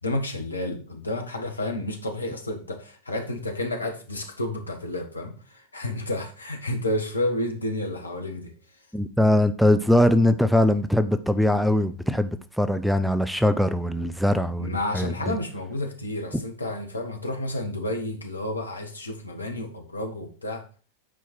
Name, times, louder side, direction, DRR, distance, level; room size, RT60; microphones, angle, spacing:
voice 1, 0.0-8.6 14.6-20.6, left 1 dB, 80° left, 3 dB, 1.6 m, -31 dB
voice 2, 8.9-15.3, left 1 dB, ahead, 12 dB, 0.5 m, -21 dB
9.2 x 4.5 x 4.4 m, 0.39 s
figure-of-eight pair, 90°, 0 cm